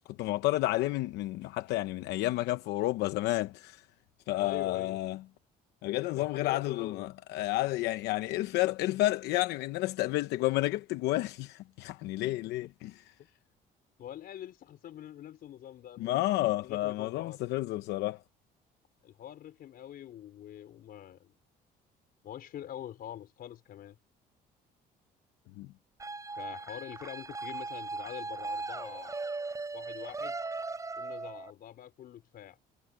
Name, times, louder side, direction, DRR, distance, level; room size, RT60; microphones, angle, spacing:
voice 1, 0.2-3.8 4.3-5.2 5.8-13.0 16.0-18.2 25.6-25.7, left 17 dB, 85° left, 0.8 m, -31 dB
voice 2, 4.4-5.0 6.2-7.0 14.0-16.1 16.6-17.4 19.0-21.3 22.2-24.0 26.4-29.1 29.7-30.4 31.0-32.6, left 11 dB, 60° left, 4.6 m, -45 dB
sound 1, 26.0-31.5, right 3 dB, 20° right, 5.2 m, -38 dB
cardioid pair, 110°, 17 cm